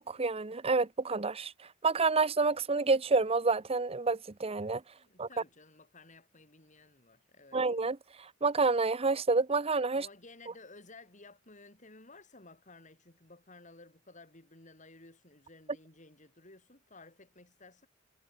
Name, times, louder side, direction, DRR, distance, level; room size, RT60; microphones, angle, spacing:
voice 1, 0.0-4.8 5.2-5.3 7.5-10.1, right 4 dB, 30° right, 0.8 m, -29 dB
voice 2, 5.0-7.7 9.9-17.9, left 3 dB, 40° left, 6.8 m, -55 dB
head